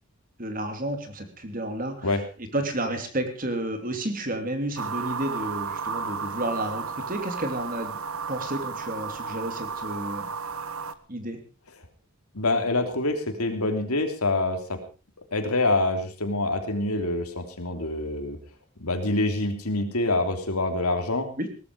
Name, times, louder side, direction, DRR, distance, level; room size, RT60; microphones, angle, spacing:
voice 1, 0.4-8.0 8.3-10.3 11.1-11.4 21.4-21.5, right 1 dB, 40° right, 7 dB, 3.0 m, -31 dB
sound 1, 4.8-10.9, right 5 dB, 70° right, 1.1 m, -33 dB
voice 2, 12.3-14.8 15.3-18.4 18.8-21.3, left 2 dB, 80° left, 6 dB, 3.3 m, -26 dB
18.5 x 13.5 x 4.8 m, 0.35 s
head